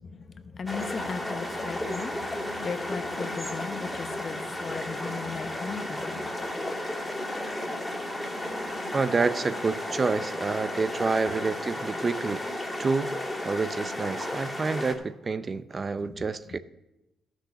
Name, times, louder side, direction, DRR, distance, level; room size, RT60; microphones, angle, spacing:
voice 1, 0.0-6.4 16.0-16.6, left 5 dB, 40° left, 0.9 m, -37 dB
sound 1, 0.7-14.9, left 1 dB, 5° left, 2.5 m, -33 dB
voice 2, 8.9-12.4 12.8-13.1 13.4-16.6, right 4 dB, 35° right, 0.5 m, -28 dB
13.5 x 6.3 x 6.8 m
cardioid pair, 90°, 0 cm